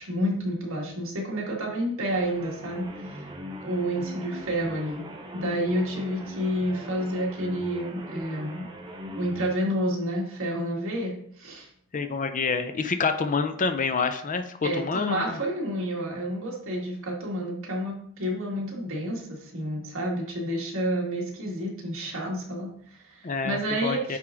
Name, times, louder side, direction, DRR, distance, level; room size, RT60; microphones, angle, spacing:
voice 1, 0.0-3.3 3.6-5.1 5.3-8.7 9.2-11.7 14.6-24.2, equal, 65° right, -2 dB, 1.9 m, -30 dB
sound 1, 2.1-9.5, left 1 dB, 20° right, 0.7 m, -40 dB
voice 2, 11.9-15.4 23.2-24.2, left 4 dB, 40° left, 8 dB, 0.5 m, -27 dB
9.1 x 3.6 x 3.7 m, 0.67 s
head